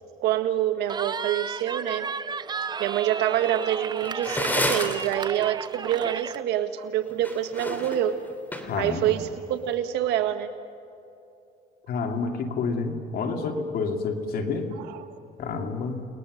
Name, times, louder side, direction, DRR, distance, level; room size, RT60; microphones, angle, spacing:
voice 1, 0.2-2.2 2.8-8.2 8.8-10.5 14.8-15.1, right 11 dB, 85° right, 7 dB, 1.7 m, -26 dB
Cheering, 0.9-6.4, right 5 dB, 25° right, 0.6 m, -33 dB
sound 1, 3.7-5.1 7.1-8.9, left 1 dB, 10° left, 3.0 m, -29 dB
voice 2, 8.6-9.1 11.9-14.7 15.4-16.1, left 4 dB, 65° left, 3 dB, 2.9 m, -29 dB
29.5 x 20.5 x 6.6 m, 2.7 s
cardioid pair, 110°, 17 cm